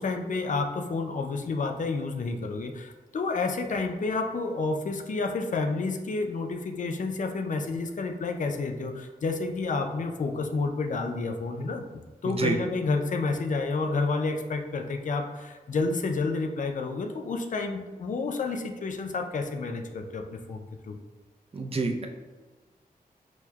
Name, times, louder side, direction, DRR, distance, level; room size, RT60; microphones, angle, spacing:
voice 1, 0.0-21.0, left 3 dB, 55° left, 5 dB, 0.4 m, -30 dB
voice 2, 12.3-12.6 21.5-22.1, right 4 dB, 40° right, 3 dB, 0.5 m, -28 dB
6.1 x 2.1 x 2.3 m, 1.3 s
wide cardioid pair, 75°, 16 cm